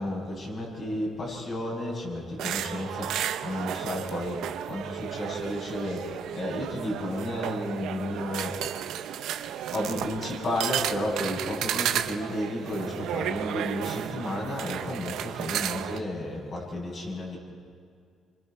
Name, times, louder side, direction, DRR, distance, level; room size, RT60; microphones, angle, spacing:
voice 1, 0.0-8.6 9.7-17.4, left 1 dB, 50° left, -2 dB, 7.4 m, -32 dB
sound 1, 2.4-16.0, right 10 dB, 85° right, 0.8 m, -33 dB
27.5 x 24.5 x 4.5 m, 2.3 s
cardioid pair, 90°, 0 cm